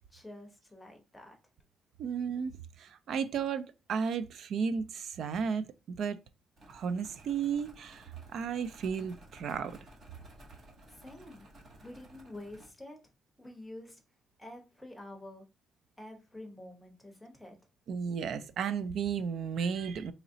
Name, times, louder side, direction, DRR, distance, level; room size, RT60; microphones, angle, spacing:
voice 1, 0.1-1.4 10.9-11.5 11.8-13.0 13.4-14.0 14.4-15.4 16.0-17.6, left 1 dB, 5° left, 0.8 m, -48 dB
voice 2, 2.0-6.2 6.7-8.1 8.3-9.8 17.9-20.1, right 6 dB, 55° right, 0.3 m, -34 dB
sound 1, 6.6-12.7, right 1 dB, 35° right, 0.9 m, -55 dB
3.9 x 3.0 x 2.6 m
cardioid pair, 175°, 0 cm